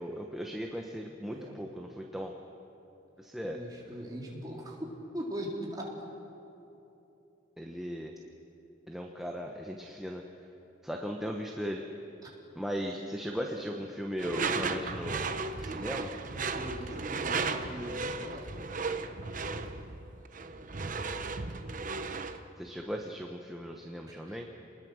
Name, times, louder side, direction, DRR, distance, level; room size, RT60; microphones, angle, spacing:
voice 1, 0.0-2.3 3.2-3.6 7.6-8.1 8.9-10.2 10.8-11.8 12.6-15.3 15.6-16.1 22.6-24.5, equal, ahead, 1 dB, 1.0 m, -37 dB
voice 2, 1.3-1.6 3.5-6.0 12.2-12.3 15.0-15.2 16.3-18.5 24.0-24.5, equal, 20° right, -3 dB, 3.6 m, -41 dB
Door / Screech, 14.2-22.4, right 4 dB, 40° right, 0.9 m, -35 dB
28.5 x 20.5 x 6.4 m, 3.0 s
head